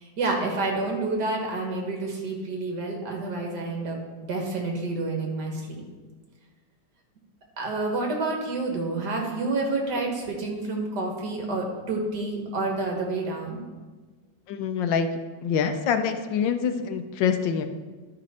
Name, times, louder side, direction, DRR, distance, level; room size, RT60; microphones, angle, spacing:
voice 1, 0.0-5.8 7.6-13.6, right 2 dB, 60° right, 1 dB, 1.9 m, -29 dB
voice 2, 14.5-15.1 15.4-17.6, left 7 dB, 80° left, 8 dB, 1.3 m, -25 dB
12.0 x 5.2 x 4.2 m, 1.3 s
omnidirectional pair, 2.0 m